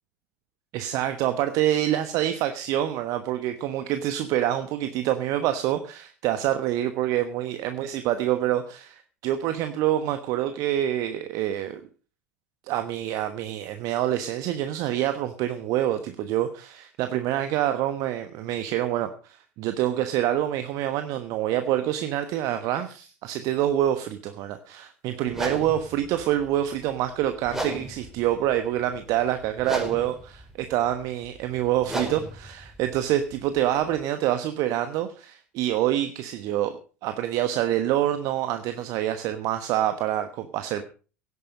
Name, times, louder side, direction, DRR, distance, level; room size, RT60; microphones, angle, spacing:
voice 1, 0.7-11.8 12.7-36.7 37.0-40.8, right 12 dB, 50° right, 9 dB, 1.2 m, -26 dB
sound 1, 25.3-34.0, right 1 dB, 5° right, 5.1 m, -37 dB
17.0 x 9.7 x 5.3 m, 0.38 s
figure-of-eight pair, 75°, 8 cm